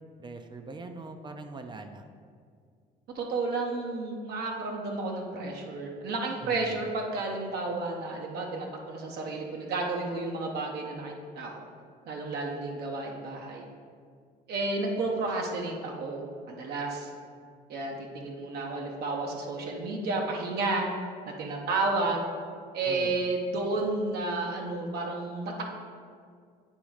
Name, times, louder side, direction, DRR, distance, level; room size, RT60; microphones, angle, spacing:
voice 1, 0.2-2.1 6.4-6.8 22.9-23.2, right 3 dB, 25° right, 6 dB, 0.4 m, -42 dB
voice 2, 3.1-11.7 12.1-13.6 14.5-17.1 17.7-20.9 21.3-22.3 22.7-25.6, right 3 dB, 70° right, 0 dB, 0.9 m, -32 dB
8.4 x 3.1 x 4.9 m, 2.1 s
cardioid pair, 110°, 17 cm